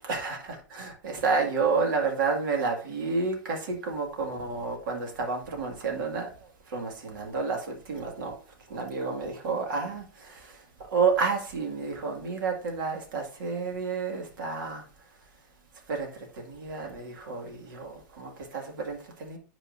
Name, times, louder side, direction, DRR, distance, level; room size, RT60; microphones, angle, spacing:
voice 1, 0.0-8.4 8.7-14.8 15.9-16.1 16.3-19.4, right 4 dB, 80° right, 2.0 m, -30 dB
10.5 x 4.5 x 2.6 m
supercardioid pair, 140°, 11 cm